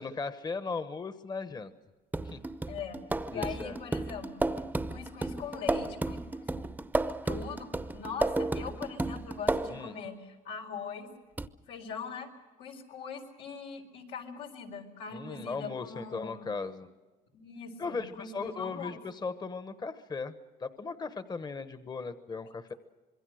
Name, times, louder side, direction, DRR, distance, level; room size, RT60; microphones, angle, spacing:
voice 1, 0.0-1.7 2.2-2.4 3.3-3.8 9.7-10.0 15.1-16.9 17.8-20.3 20.6-22.7, left 4 dB, 25° left, 11 dB, 1.1 m, -37 dB
sound 1, 2.1-9.9 11.4-11.5, right 2 dB, 10° right, 0.8 m, -33 dB
voice 2, 2.7-3.0 3.3-4.5 4.9-6.7 7.0-11.1 11.7-12.3 12.6-16.6 17.3-19.0, left 6 dB, 90° left, 2 dB, 4.3 m, -41 dB
26.5 x 22.0 x 6.4 m, 1.3 s
cardioid pair, 110°, 17 cm